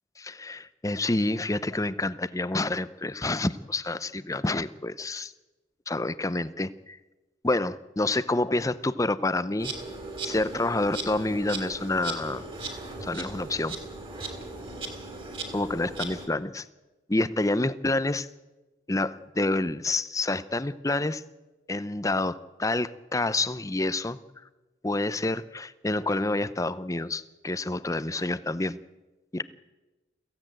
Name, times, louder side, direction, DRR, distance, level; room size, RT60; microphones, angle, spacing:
voice 1, 0.2-5.3 5.9-7.0 7.4-9.7 10.2-12.4 13.0-13.8 15.5-16.7 17.1-18.3 18.9-21.2 21.7-24.2 24.8-28.8 29.3-29.4, left 2 dB, 15° left, 15 dB, 0.6 m, -28 dB
Insect, 9.6-16.3, right 3 dB, 30° right, 3.2 m, -37 dB
22.5 x 16.0 x 9.0 m, 1.1 s
head